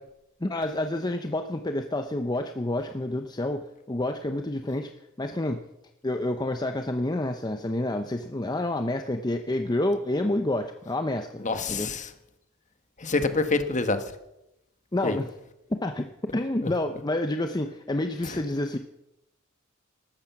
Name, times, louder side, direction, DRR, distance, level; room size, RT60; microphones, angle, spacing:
voice 1, 0.4-4.9 5.2-5.6 6.0-11.4 11.7-11.9 14.9-15.3 15.7-16.0 16.3-18.8, left 1 dB, 20° left, 7 dB, 0.7 m, -28 dB
voice 2, 11.4-12.1 13.0-14.0 15.0-15.2 16.6-16.7 18.2-18.4, left 3 dB, 35° left, 9 dB, 1.4 m, -26 dB
15.0 x 12.5 x 6.0 m, 0.88 s
head